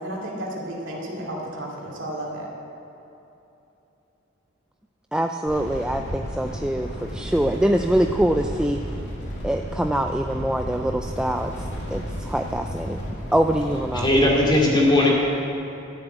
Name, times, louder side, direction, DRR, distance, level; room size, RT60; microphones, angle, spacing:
voice 1, 0.0-2.5, right 1 dB, 70° right, -3 dB, 2.5 m, -32 dB
voice 2, 5.1-8.8 9.4-11.5 11.9-13.0 13.3-14.1, right 1 dB, 5° right, 4 dB, 0.3 m, -24 dB
sound 1, 5.5-14.5, equal, 60° left, 2.6 m, -33 dB
voice 3, 13.9-15.1, left 1 dB, 25° left, -3 dB, 2.3 m, -18 dB
13.0 x 7.3 x 8.0 m, 3.0 s
head